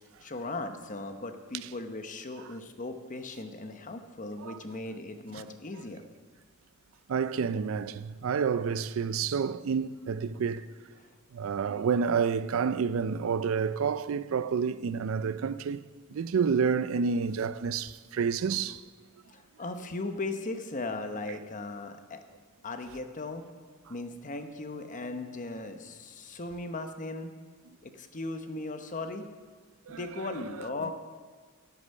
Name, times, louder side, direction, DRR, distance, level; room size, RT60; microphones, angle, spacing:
voice 1, 0.2-6.0 11.0-11.1 19.3-22.2 22.6-23.4 23.9-27.3 27.8-29.2 29.9-30.9, left 2 dB, 40° left, 0.9 m, -37 dB
voice 2, 7.1-10.7 11.3-15.8 16.1-18.8 29.9-30.0, right 6 dB, 70° right, 0.4 m, -29 dB
13.5 x 8.2 x 5.5 m
head